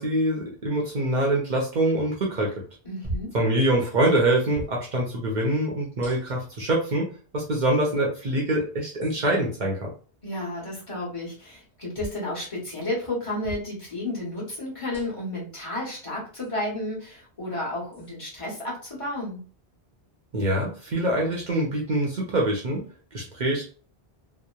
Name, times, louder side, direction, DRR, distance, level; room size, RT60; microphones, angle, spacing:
voice 1, 0.0-2.5 3.3-7.1 7.3-9.9 20.3-22.9 23.1-23.6, right 1 dB, 55° right, -2 dB, 0.6 m, -24 dB
voice 2, 2.8-3.3 10.2-19.4, left 1 dB, 35° left, -5 dB, 1.0 m, -32 dB
sound 1, 3.0-3.4 4.5-4.8 6.0-6.5 7.5-7.6 9.0-9.2 11.9-12.2 13.4-13.7 14.9-15.3 16.4-16.5 17.9-18.1, right 1 dB, ahead, 0.8 m, -37 dB
2.8 x 2.0 x 2.2 m, 0.41 s
omnidirectional pair, 1.0 m